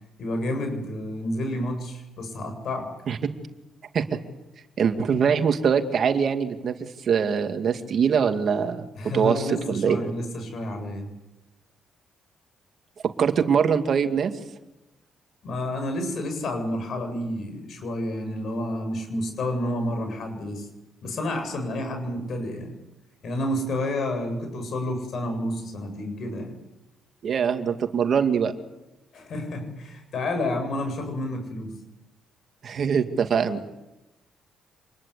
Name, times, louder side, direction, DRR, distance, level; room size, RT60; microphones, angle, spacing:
voice 1, 0.2-2.9 8.9-11.1 15.4-20.7 21.0-22.8 23.2-26.6 29.1-31.8, left 1 dB, 60° left, 5 dB, 7.9 m, -30 dB
voice 2, 4.8-8.9 9.1-10.0 13.0-14.3 27.2-28.5 32.6-33.6, right 7 dB, 55° right, 7 dB, 2.3 m, -23 dB
26.5 x 21.0 x 8.4 m, 0.96 s
cardioid pair, 90°, 0 cm